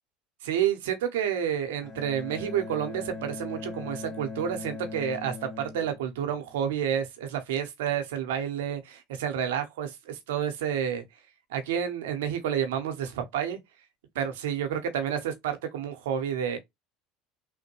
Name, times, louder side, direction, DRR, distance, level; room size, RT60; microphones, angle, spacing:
voice 1, 0.4-11.0 11.5-13.6 14.1-16.6, right 9 dB, 85° right, 0.8 m, -30 dB
Bowed string instrument, 1.8-6.8, left 4 dB, 55° left, 1.7 m, -40 dB
3.3 x 2.2 x 2.8 m
hypercardioid pair, 85°, 0 cm